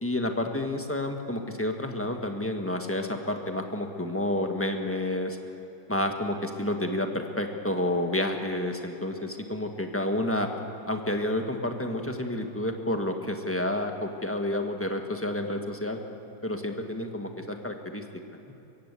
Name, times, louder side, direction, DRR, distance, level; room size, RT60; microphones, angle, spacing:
voice 1, 0.0-5.4 5.9-10.5 10.9-16.0 16.4-18.0, left 1 dB, 10° left, 4 dB, 1.2 m, -30 dB
23.5 x 16.0 x 8.2 m, 2.8 s
omnidirectional pair, 1.9 m